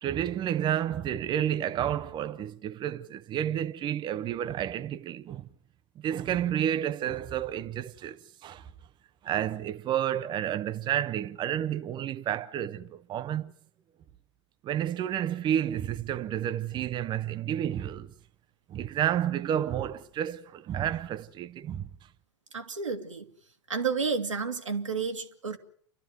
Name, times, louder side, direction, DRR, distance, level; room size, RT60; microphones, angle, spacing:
voice 1, 0.0-5.5 6.0-8.7 9.2-13.5 14.6-18.1 18.7-21.9, right 10 dB, 30° right, 0.9 m, -30 dB
voice 2, 22.5-23.3 23.7-25.6, right 5 dB, 85° right, 2.3 m, -31 dB
29.0 x 12.5 x 9.4 m
figure-of-eight pair, 95°, 16 cm